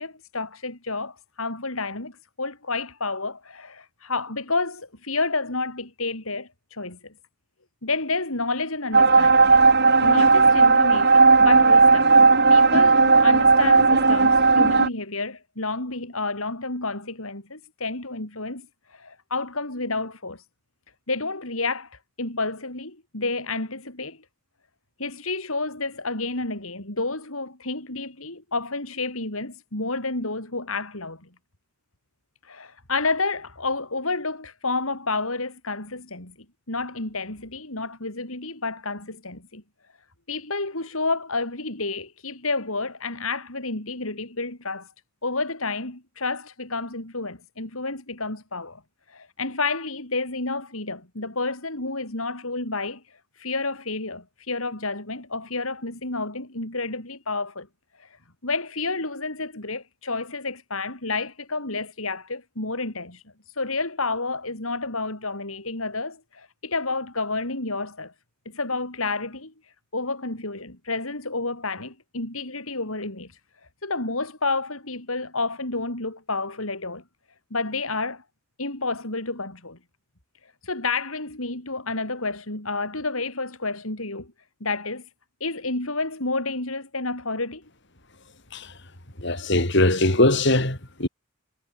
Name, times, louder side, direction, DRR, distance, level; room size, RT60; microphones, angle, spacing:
voice 1, 0.0-7.0 7.8-9.5 10.0-12.1 12.5-20.4 21.1-24.2 25.0-31.2 32.4-36.3 36.7-39.6 40.3-44.9 45.2-48.8 49.1-57.7 58.0-58.2 58.4-63.2 63.5-68.1 68.5-73.4 73.8-77.0 77.5-78.2 78.6-79.8 80.6-84.3 84.6-85.1 85.4-87.6, left 3 dB, 80° left, 6.0 m, -30 dB
sound 1, 8.9-14.9, right 4 dB, 50° right, 3.7 m, -15 dB
voice 2, 89.2-91.1, left 1 dB, 55° left, 4.6 m, -20 dB
head